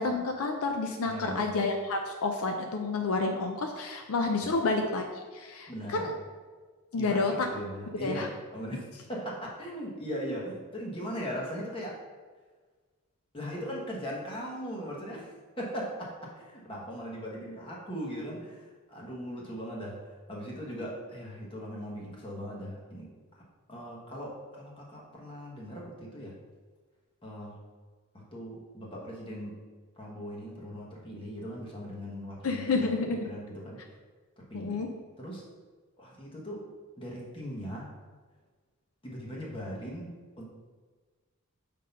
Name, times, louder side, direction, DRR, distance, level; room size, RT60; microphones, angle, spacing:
voice 1, 0.0-6.1 6.9-7.5 8.0-8.3 32.4-33.3 34.5-34.9, left 3 dB, 70° left, 4 dB, 0.5 m, -29 dB
voice 2, 1.0-1.5 4.4-4.5 5.7-6.1 7.0-8.8 9.1-12.0 13.3-23.1 23.7-26.4 27.2-27.6 28.1-29.6 30.0-32.6 33.1-33.8 34.4-34.8 35.2-35.4 36.0-36.7 37.0-37.9 39.0-40.4, equal, 25° left, -4 dB, 1.3 m, -39 dB
5.5 x 3.7 x 5.5 m, 1.4 s
head